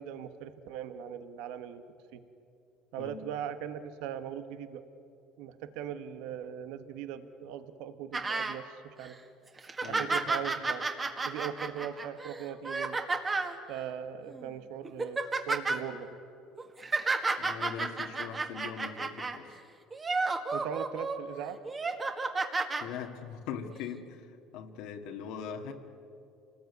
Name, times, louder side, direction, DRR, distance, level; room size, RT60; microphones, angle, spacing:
voice 1, 0.0-1.8 2.1-2.2 2.9-4.8 5.4-9.2 9.9-10.8 11.2-13.0 13.7-16.1 20.5-21.6, right 9 dB, 80° right, 11 dB, 1.3 m, -39 dB
witch-laughing, 8.1-8.6 9.0-9.1 9.6-13.6 14.3-14.5 14.8-15.8 16.6-19.4 19.9-21.2 21.6-22.8 23.8-23.9, right 3 dB, 20° right, 1.8 m, -32 dB
voice 2, 9.8-10.3 17.4-19.5 22.8-25.7, left 7 dB, 75° left, 3 dB, 2.0 m, -41 dB
27.5 x 19.5 x 9.4 m, 2.7 s
cardioid pair, 140°, 0 cm